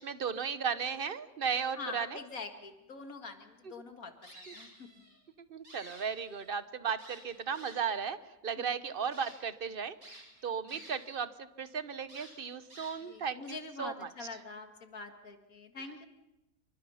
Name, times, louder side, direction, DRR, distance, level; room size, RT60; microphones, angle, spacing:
voice 1, 0.0-2.2 4.5-4.6 5.5-8.2 8.4-14.1, right 6 dB, 40° right, 13 dB, 1.1 m, -36 dB
voice 2, 1.8-5.1 8.6-8.7 10.7-10.8 13.0-16.1, left 4 dB, 70° left, 6 dB, 2.4 m, -45 dB
sound 1, 4.2-5.2 5.5-6.6 7.0-8.0 8.6-8.7 9.1-9.4 10.0-11.2 11.5-11.6 12.1-13.2, right 1 dB, 75° right, 7.5 m, -53 dB
28.0 x 24.5 x 5.7 m, 0.94 s
omnidirectional pair, 1.5 m